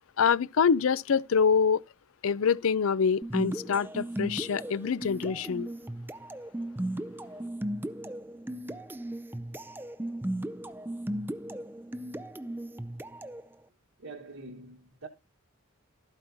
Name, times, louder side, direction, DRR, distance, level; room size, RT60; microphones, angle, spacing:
voice 1, 0.2-1.8 2.2-5.7, left 6 dB, 70° left, 0.5 m, -25 dB
sound 1, 3.2-13.5, right 1 dB, 10° right, 0.4 m, -36 dB
voice 2, 14.0-15.1, right 3 dB, 70° right, 1.5 m, -44 dB
12.5 x 9.0 x 2.7 m
head